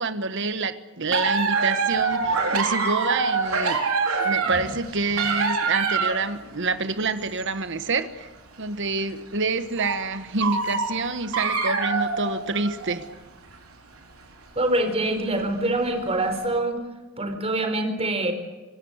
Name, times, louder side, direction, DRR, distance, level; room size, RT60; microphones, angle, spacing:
voice 1, 0.0-3.8 4.2-8.3 8.6-13.1, right 3 dB, 60° right, 10 dB, 1.4 m, -27 dB
sound 1, 1.1-6.3 7.0-7.5 8.0-8.1 8.6-8.7 9.7-10.0 10.4-13.1 13.5-13.6 14.6-14.9 15.7-15.9 16.3-16.4, right 4 dB, 90° right, 4.3 m, -25 dB
voice 2, 14.6-16.8 17.2-18.3, right 1 dB, 30° right, 7 dB, 4.3 m, -25 dB
25.5 x 20.5 x 8.2 m, 1.2 s
head